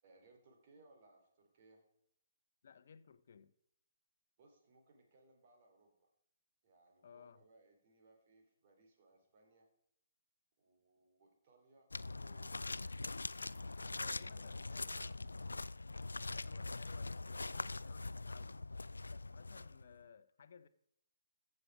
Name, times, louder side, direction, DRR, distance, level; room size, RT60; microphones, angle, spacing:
voice 1, 0.0-1.8 4.4-6.1 6.6-9.7 10.6-12.7 13.4-13.7 14.1-15.1, right 2 dB, 45° right, 3 dB, 3.4 m, -67 dB
voice 2, 2.6-3.5 7.0-7.4 13.8-15.4 16.3-18.6 19.1-20.7, left 6 dB, 60° left, 13 dB, 0.8 m, -59 dB
sound 1, 11.9-20.0, left 3 dB, 85° left, 0.3 m, -43 dB
15.0 x 6.7 x 4.7 m, 0.75 s
figure-of-eight pair, 140°, 0 cm